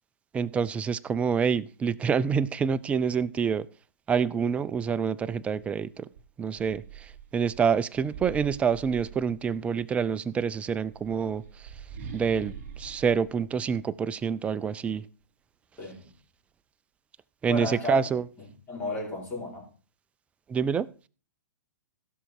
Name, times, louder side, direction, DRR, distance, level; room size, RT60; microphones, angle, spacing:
voice 1, 0.3-3.7 4.1-6.1 6.4-11.4 12.1-15.0 17.4-18.2 20.5-20.9, right 6 dB, 15° right, 0.4 m, -27 dB
sound 1, 6.1-9.8 10.7-14.3, right 6 dB, 50° right, 3.2 m, -44 dB
voice 2, 15.8-16.1 17.5-18.0 18.4-19.7, left 2 dB, 20° left, 4.9 m, -34 dB
16.0 x 6.4 x 4.6 m
hypercardioid pair, 130°, 10 cm